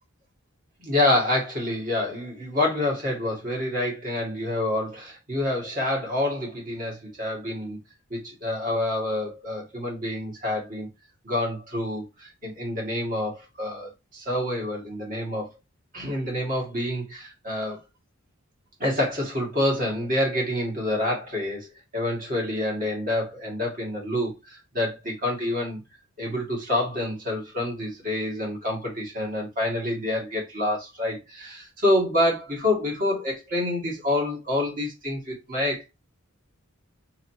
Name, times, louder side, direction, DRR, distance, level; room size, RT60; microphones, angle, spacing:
voice 1, 0.8-7.8 8.1-10.9 11.2-15.5 15.9-17.8 18.8-25.8 26.2-35.9, left 1 dB, 40° right, 2.0 m, -27 dB
4.4 x 3.9 x 2.8 m
head